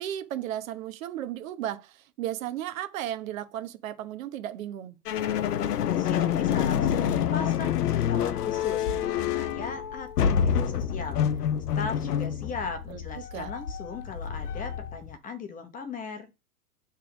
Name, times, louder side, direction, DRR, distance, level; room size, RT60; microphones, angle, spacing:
voice 1, 0.0-5.0 12.9-13.0 13.3-13.5, right 11 dB, 60° right, 1.0 m, -35 dB
sound 1, 5.1-15.2, left 9 dB, 85° left, 0.8 m, -27 dB
voice 2, 5.9-11.2 11.8-16.3, left 5 dB, 20° left, 0.8 m, -38 dB
6.7 x 3.5 x 4.9 m
hypercardioid pair, 130°, 45 cm